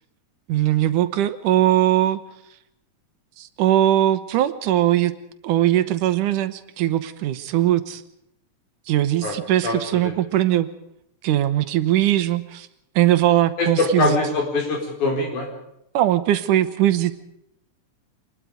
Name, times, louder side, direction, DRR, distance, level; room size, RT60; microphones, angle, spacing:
voice 1, 0.5-2.2 3.4-5.2 5.4-8.0 8.9-10.7 11.2-12.7 13.0-14.2 15.9-17.1, right 13 dB, 80° right, 13 dB, 2.6 m, -20 dB
voice 2, 9.6-10.1 13.6-15.5, left 2 dB, 70° left, 2 dB, 5.9 m, -23 dB
26.0 x 20.5 x 5.1 m, 0.78 s
omnidirectional pair, 3.6 m